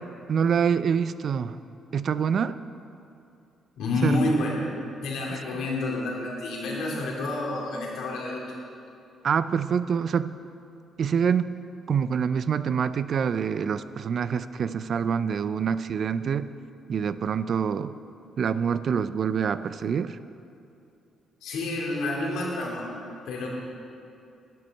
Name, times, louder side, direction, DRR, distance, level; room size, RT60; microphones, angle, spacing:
voice 1, 0.3-1.6 1.9-2.6 4.0-4.2 5.3-5.4 9.2-10.3 11.0-11.5 11.9-16.5 16.9-18.0 18.4-20.2, right 7 dB, 55° right, 14 dB, 0.4 m, -26 dB
voice 2, 3.8-4.6 5.0-8.4 21.4-22.9 23.3-23.5, left 2 dB, 85° left, -3 dB, 2.6 m, -28 dB
10.5 x 7.7 x 6.5 m, 2.7 s
cardioid pair, 80°, 0 cm